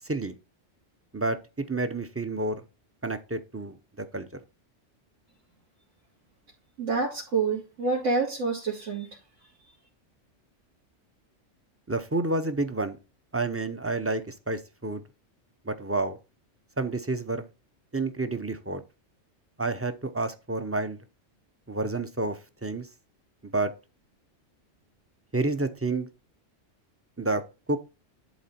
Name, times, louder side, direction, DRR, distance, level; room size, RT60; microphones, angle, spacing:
voice 1, 1.1-2.6 3.0-4.3 11.9-13.0 13.3-15.0 15.7-16.2 16.8-17.4 17.9-18.8 19.6-21.0 21.7-22.9 23.5-23.7 25.3-26.1 27.2-27.4 27.7-27.8, right 2 dB, 15° right, 0.6 m, -29 dB
voice 2, 6.8-9.1, right 4 dB, 80° right, 2.8 m, -27 dB
11.0 x 3.9 x 4.3 m
omnidirectional pair, 1.3 m